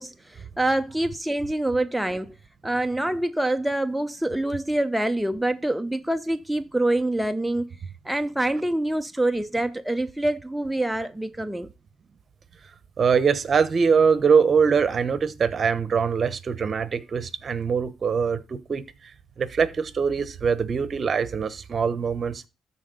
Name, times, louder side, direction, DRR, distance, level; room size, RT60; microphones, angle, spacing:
voice 1, 0.0-2.4 2.6-7.7 8.0-11.7, right 1 dB, 5° right, 0.4 m, -26 dB
voice 2, 13.0-18.8 19.4-22.4, right 6 dB, 45° right, 1.0 m, -23 dB
13.0 x 4.3 x 3.9 m
cardioid pair, 90°, 0 cm